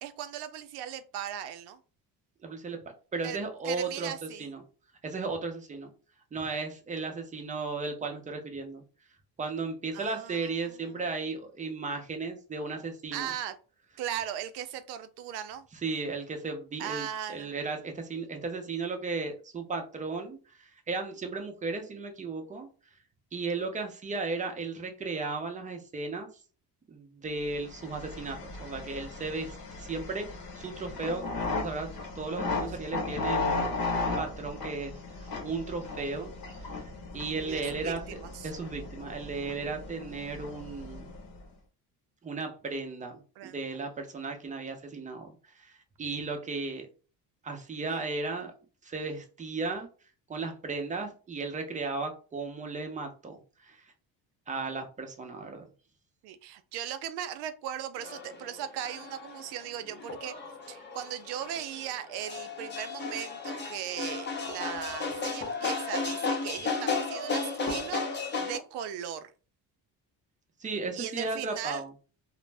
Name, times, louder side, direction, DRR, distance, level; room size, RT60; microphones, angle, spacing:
voice 1, 0.0-1.8 3.2-3.4 3.6-4.5 9.9-11.0 13.1-13.6 14.0-15.6 16.8-17.5 37.4-38.5 43.4-43.7 47.9-48.0 56.2-60.3 60.7-69.3 71.0-71.8, right 10 dB, 85° right, 0.5 m, -38 dB
voice 2, 2.4-2.8 3.1-4.6 5.0-5.9 6.3-8.8 9.4-13.3 15.7-22.7 23.3-26.3 26.9-31.9 32.2-36.3 36.6-38.2 38.4-41.0 42.2-45.3 45.6-46.9 47.4-48.5 48.8-49.9 50.3-53.8 54.5-55.6 70.6-71.9, right 3 dB, 20° right, 0.5 m, -35 dB
sound 1, 27.6-41.4, left 3 dB, 65° left, 0.9 m, -36 dB
sound 2, 58.0-68.6, left 4 dB, 30° left, 0.7 m, -34 dB
2.5 x 2.0 x 3.2 m
cardioid pair, 135°, 38 cm